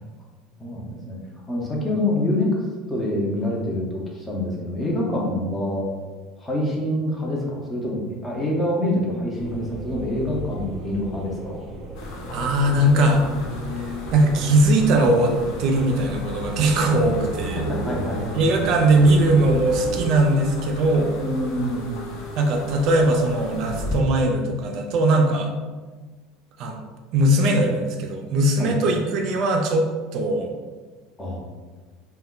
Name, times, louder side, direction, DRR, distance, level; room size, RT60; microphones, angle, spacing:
voice 1, 0.6-1.2 1.5-2.5 2.9-5.9 6.4-11.6 17.6-18.4 21.2-22.1 28.6-28.7 31.2-31.4, left 1 dB, 15° left, -2 dB, 0.6 m, -26 dB
sound 1, 9.4-20.0, right 2 dB, 30° right, 0.8 m, -36 dB
sound 2, 11.9-24.0, left 2 dB, 65° left, 0.5 m, -34 dB
voice 2, 12.3-13.2 14.1-17.6 18.3-21.1 22.4-25.5 26.6-26.8 27.1-29.8 30.1-30.5, right 1 dB, 55° right, 3 dB, 0.3 m, -20 dB
2.2 x 2.1 x 3.6 m, 1.4 s
supercardioid pair, 135°, 0 cm